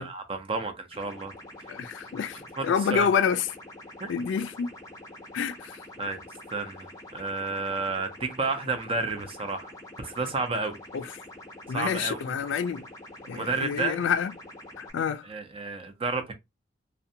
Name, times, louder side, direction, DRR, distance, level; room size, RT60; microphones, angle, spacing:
voice 1, 0.0-1.3 1.7-1.8 2.6-3.1 4.0-4.1 6.0-6.2 6.5-9.7 10.0-10.8 11.7-12.2 13.3-14.0 15.2-16.3, right 3 dB, 30° right, 0.5 m, -31 dB
sound 1, 0.9-14.9, left 1 dB, 20° left, 0.7 m, -46 dB
voice 2, 1.7-3.4 4.1-4.7 5.3-5.8 10.9-11.0 11.7-12.8 13.3-14.3 14.8-15.2, left 7 dB, 70° left, 0.3 m, -28 dB
2.5 x 2.2 x 2.6 m
head